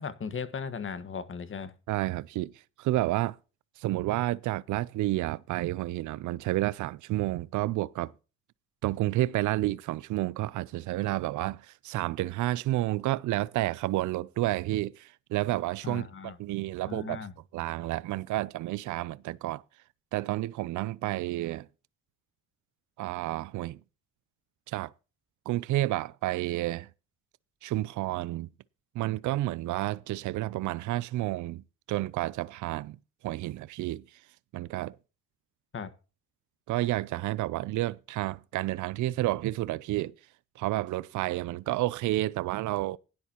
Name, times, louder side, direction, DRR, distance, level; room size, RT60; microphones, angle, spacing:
voice 1, 0.0-1.7 15.8-16.4 16.8-17.3 35.7-35.9, left 6 dB, 45° left, 1.5 m, -37 dB
voice 2, 1.9-2.5 2.8-3.4 3.8-8.1 8.8-17.2 17.5-19.6 20.1-21.7 23.0-23.8 24.7-24.9 25.5-26.9 27.6-28.5 28.9-33.0 33.2-34.0 34.5-35.0 36.7-40.1 40.6-43.0, right 16 dB, 75° right, 0.5 m, -30 dB
17.0 x 10.5 x 2.9 m
cardioid pair, 90°, 30 cm